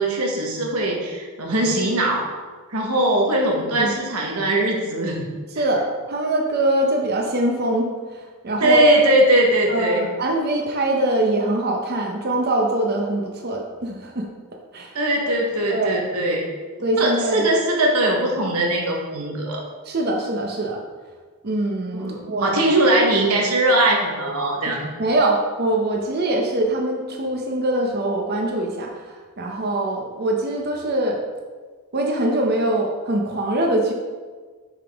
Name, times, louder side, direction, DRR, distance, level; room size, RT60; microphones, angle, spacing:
voice 1, 0.0-2.3 2.7-5.3 8.6-10.1 14.9-16.4 17.0-19.6 21.9-24.9, right 1 dB, 80° right, -1 dB, 1.1 m, -20 dB
voice 2, 5.5-8.8 9.7-14.3 14.7-14.9 15.7-16.0 16.8-17.5 19.9-20.8 21.4-22.6 25.0-31.2 31.9-33.9, right 1 dB, 45° right, 0 dB, 0.7 m, -23 dB
5.7 x 4.9 x 3.5 m, 1.5 s
head